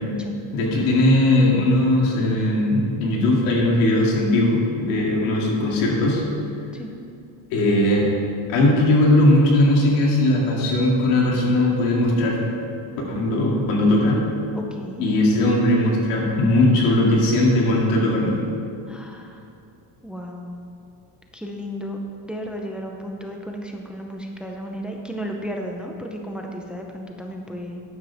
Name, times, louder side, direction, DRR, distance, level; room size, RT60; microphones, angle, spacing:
voice 1, 0.5-6.2 7.5-8.1 8.5-12.4 13.1-14.2 15.0-18.4, left 1 dB, 85° left, -2 dB, 2.7 m, -19 dB
voice 2, 14.5-15.0 18.9-19.5 20.0-20.5 21.3-22.0 22.2-27.8, equal, ahead, 2 dB, 0.6 m, -34 dB
12.5 x 9.8 x 3.5 m, 2.6 s
cardioid pair, 145°, 44 cm